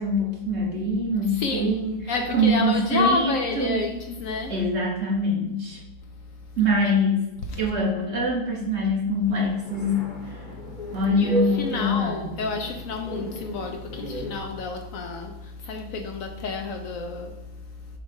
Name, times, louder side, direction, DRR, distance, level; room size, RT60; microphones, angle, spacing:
voice 1, 0.0-3.8 4.5-5.8 6.6-7.2 7.6-10.1 10.9-12.3, left 1 dB, 45° right, 1.7 m, -24 dB
voice 2, 1.3-4.6 6.6-6.7 7.4-7.7 10.7-18.0, left 3 dB, 65° left, 0.9 m, -30 dB
sound 1, 9.2-14.4, right 2 dB, 35° left, 1.1 m, -34 dB
7.1 x 2.5 x 5.3 m
omnidirectional pair, 1.6 m